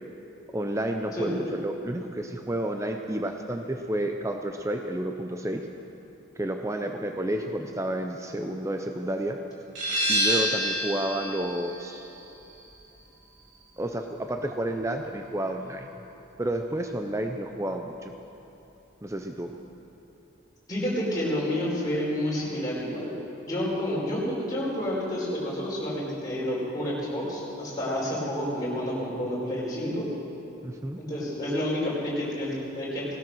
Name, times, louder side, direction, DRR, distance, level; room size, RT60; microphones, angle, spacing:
voice 1, 0.5-5.7 6.4-9.4 10.1-12.1 13.8-15.9 16.4-18.1 19.0-19.5 30.6-31.0, right 1 dB, 15° right, 4 dB, 0.6 m, -30 dB
sound 1, 9.8-15.2, right 1 dB, 70° right, 4.2 m, -30 dB
voice 2, 20.7-30.1 31.0-33.1, left 1 dB, 20° left, -7 dB, 4.4 m, -29 dB
18.0 x 12.5 x 6.2 m, 3.0 s
head